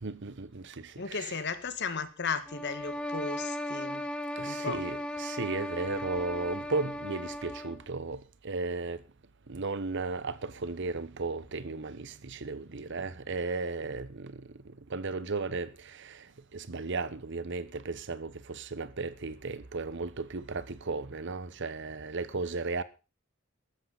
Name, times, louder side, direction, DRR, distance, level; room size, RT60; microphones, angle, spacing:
voice 1, 0.0-1.4 4.4-9.0 9.5-14.5 14.9-16.2 16.5-22.8, right 3 dB, 60° right, 1.0 m, -35 dB
voice 2, 1.0-4.1 4.4-4.8, left 5 dB, 55° left, 1.5 m, -35 dB
sound 1, 2.5-7.9, left 1 dB, 5° left, 1.0 m, -37 dB
sound 2, 5.7-10.2 10.5-10.6, right 1 dB, 90° right, 7.0 m, -63 dB
14.5 x 13.0 x 4.0 m
head